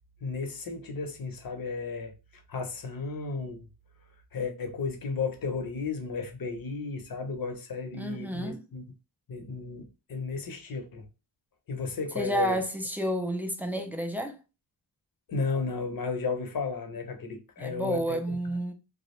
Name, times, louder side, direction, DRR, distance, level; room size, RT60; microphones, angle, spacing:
voice 1, 0.2-2.1 2.5-3.7 4.3-8.8 9.3-11.1 11.7-12.6 15.3-18.4, left 4 dB, 45° left, 0.7 m, -33 dB
voice 2, 7.9-8.6 12.1-14.4 17.6-18.7, equal, 5° right, 0.3 m, -30 dB
2.3 x 2.0 x 2.9 m
cardioid pair, 80°, 48 cm